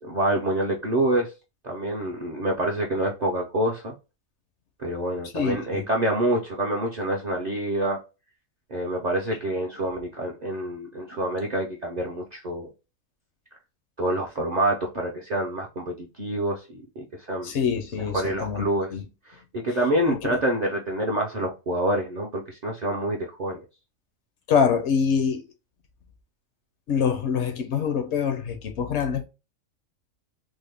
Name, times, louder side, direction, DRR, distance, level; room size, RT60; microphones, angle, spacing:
voice 1, 0.0-1.3 1.6-3.9 4.8-8.0 8.7-12.7 14.0-17.5 18.0-18.9 19.3-23.6, right 1 dB, 55° right, 0.5 m, -27 dB
voice 2, 5.3-5.8 17.4-18.7 18.9-19.0 20.1-20.4 24.5-25.4 26.9-29.3, left 6 dB, 65° left, 0.8 m, -25 dB
3.5 x 2.1 x 3.3 m
omnidirectional pair, 1.4 m